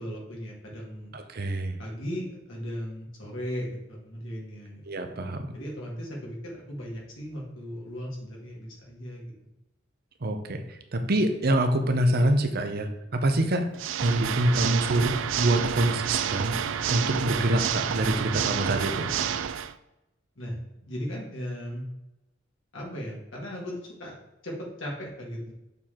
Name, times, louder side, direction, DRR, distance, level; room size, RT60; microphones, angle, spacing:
voice 1, 0.0-1.1 1.8-4.8 5.5-9.2 14.7-15.0 20.4-21.8 22.7-24.1 24.4-25.5, equal, 85° left, -3 dB, 2.4 m, -37 dB
voice 2, 1.1-1.8 4.8-5.5 10.2-13.7 14.0-15.1 15.4-16.6 16.9-19.1, right 1 dB, 55° right, 7 dB, 0.8 m, -25 dB
Water / Mechanisms, 13.7-19.7, right 8 dB, 70° right, 0.4 m, -29 dB
6.9 x 4.4 x 3.7 m, 0.95 s
head